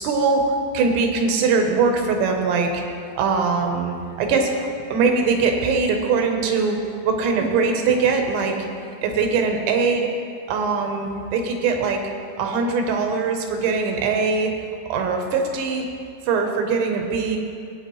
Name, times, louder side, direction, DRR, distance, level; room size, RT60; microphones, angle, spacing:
voice 1, 0.0-2.8 3.2-6.8 7.0-8.6 9.0-10.1 10.5-12.0 12.4-14.5 14.9-15.9 16.3-17.4, right 4 dB, 80° right, 3 dB, 3.2 m, -21 dB
19.0 x 8.8 x 3.1 m, 2.4 s
omnidirectional pair, 5.2 m